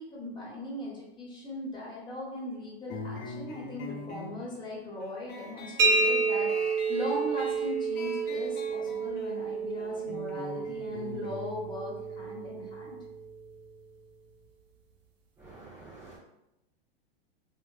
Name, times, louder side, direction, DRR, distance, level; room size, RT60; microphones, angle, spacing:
voice 1, 0.0-13.0, left 1 dB, 15° left, -4 dB, 1.0 m, -39 dB
sound 1, 2.9-14.0, left 3 dB, 30° left, 0.6 m, -45 dB
sound 2, 5.8-13.3, right 4 dB, 55° right, 0.7 m, -30 dB
voice 2, 15.4-16.2, right 3 dB, 5° right, -6 dB, 0.4 m, -49 dB
2.9 x 2.1 x 3.2 m, 0.90 s
hypercardioid pair, 120°, 31 cm